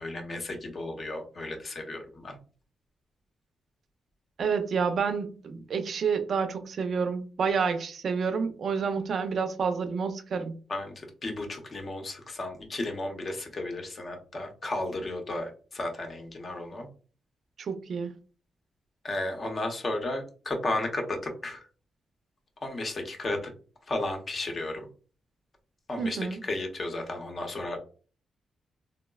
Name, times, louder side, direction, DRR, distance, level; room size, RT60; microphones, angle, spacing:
voice 1, 0.0-2.4 10.7-16.9 19.0-21.7 22.6-23.5 23.9-24.9 25.9-27.8, left 2 dB, 40° left, 0.7 m, -34 dB
voice 2, 4.4-10.6 17.6-18.1 26.0-26.4, right 5 dB, 60° right, 0.4 m, -29 dB
3.8 x 2.0 x 2.2 m
cardioid pair, 110°, 0 cm